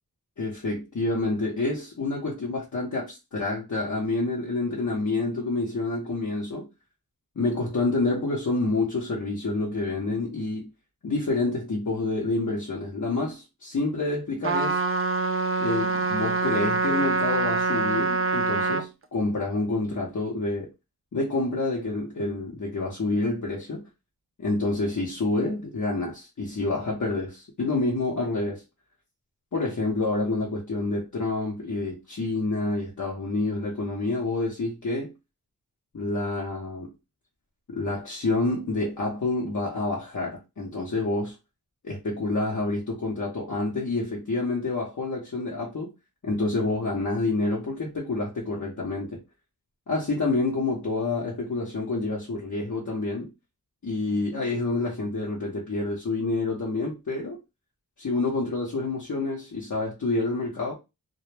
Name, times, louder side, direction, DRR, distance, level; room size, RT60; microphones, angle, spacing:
voice 1, 0.4-6.7 7.4-10.7 11.0-14.8 15.6-20.7 21.1-23.8 24.4-28.6 29.5-35.1 35.9-36.9 37.7-41.4 41.8-45.9 46.2-49.2 49.9-53.3 53.8-57.4 58.0-60.7, left 2 dB, 55° left, 0.8 m, -28 dB
Trumpet, 14.4-18.9, right 3 dB, 40° right, 0.4 m, -25 dB
2.2 x 2.0 x 3.2 m
cardioid pair, 50°, 36 cm